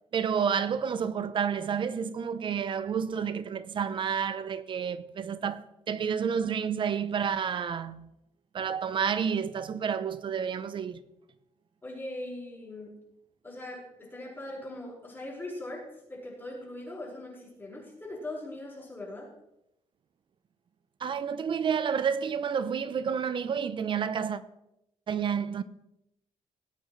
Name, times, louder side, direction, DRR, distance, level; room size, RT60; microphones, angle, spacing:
voice 1, 0.1-8.1 8.5-11.0 21.0-24.4 25.1-25.6, right 7 dB, 45° right, 0.8 m, -30 dB
voice 2, 11.8-12.9 13.4-19.3, left 1 dB, 20° left, 5.5 m, -40 dB
19.0 x 8.9 x 3.3 m
cardioid pair, 120°, 11 cm